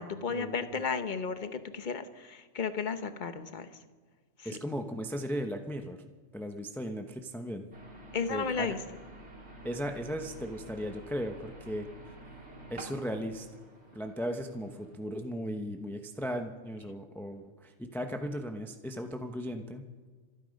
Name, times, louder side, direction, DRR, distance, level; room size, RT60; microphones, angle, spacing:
voice 1, 0.0-3.7 4.4-4.6 8.1-8.8, left 5 dB, 40° left, 10 dB, 1.0 m, -34 dB
voice 2, 4.4-6.0 6.3-7.7 8.3-8.8 9.6-11.9 12.7-13.5 13.9-19.9, equal, ahead, 5 dB, 0.8 m, -36 dB
sound 1, 7.7-14.9, right 2 dB, 55° right, 2.8 m, -49 dB
26.0 x 9.8 x 5.3 m, 1.4 s
omnidirectional pair, 1.3 m